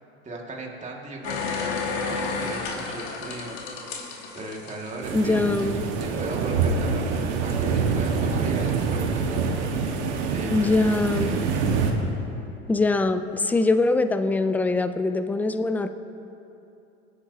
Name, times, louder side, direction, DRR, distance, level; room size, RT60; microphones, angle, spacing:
voice 1, 0.2-3.6 4.3-5.6 6.1-9.4 10.2-11.4, right 2 dB, 20° right, -1 dB, 1.9 m, -37 dB
sound 1, 1.2-5.6 6.0-6.1, left 4 dB, 55° left, 2.1 m, -31 dB
sound 2, 5.0-11.9, right 5 dB, 75° right, 1.4 m, -25 dB
voice 2, 5.1-6.0 10.5-11.4 12.7-15.9, left 2 dB, 5° left, 10 dB, 0.3 m, -23 dB
25.0 x 8.3 x 2.8 m, 2.8 s
hypercardioid pair, 95°, 34 cm